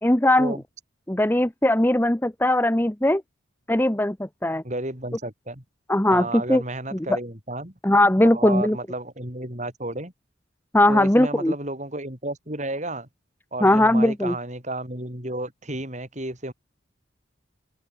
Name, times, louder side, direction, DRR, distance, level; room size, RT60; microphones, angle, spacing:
voice 1, 0.0-0.6 1.1-3.2 3.7-4.6 5.9-6.6 6.9-7.2 7.8-8.8 10.7-11.5 13.6-14.3, left 1 dB, 10° left, 0.8 m, -20 dB
voice 2, 4.6-5.6 6.1-7.7 8.3-10.1 10.9-13.1 13.5-16.5, right 1 dB, 35° right, 5.1 m, -32 dB
open air
head